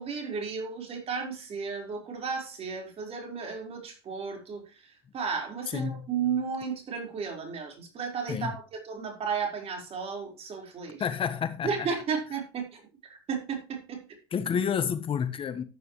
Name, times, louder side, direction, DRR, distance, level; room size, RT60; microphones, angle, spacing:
voice 1, 0.0-11.1 11.6-14.0, right 6 dB, 50° right, 4.7 m, -34 dB
voice 2, 5.7-6.0 8.3-8.5 11.0-11.9 14.3-15.6, left 7 dB, 45° left, 1.3 m, -29 dB
13.5 x 9.5 x 3.2 m
hypercardioid pair, 65°, 13 cm